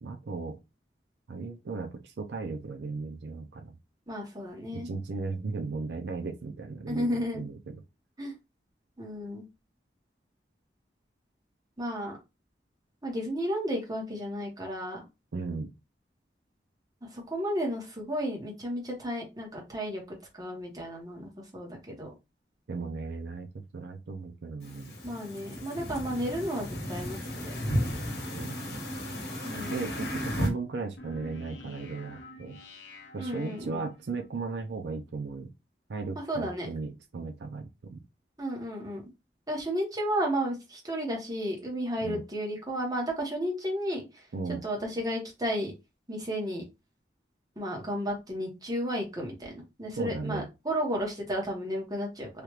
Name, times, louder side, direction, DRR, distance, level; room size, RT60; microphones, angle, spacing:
voice 1, 0.0-0.6 1.3-3.8 4.7-7.8 15.3-15.7 22.7-24.9 28.1-28.8 29.7-32.6 33.1-35.5 35.9-38.0 42.0-42.2 44.3-44.6 50.0-50.5, right 4 dB, 75° right, 0.5 m, -36 dB
voice 2, 4.1-4.9 6.9-7.4 8.2-8.3 9.0-9.4 11.8-12.2 13.0-15.0 17.1-20.0 20.4-22.1 25.0-27.7 29.4-29.8 33.2-33.8 36.1-36.7 38.4-39.0 39.5-44.3 44.6-45.7 46.1-46.6 47.6-52.3, equal, 20° right, 1.0 m, -33 dB
sound 1, 24.6-30.5, equal, 60° left, 1.1 m, -34 dB
sound 2, 31.0-34.3, left 2 dB, 90° left, 0.6 m, -48 dB
3.3 x 2.4 x 3.0 m
head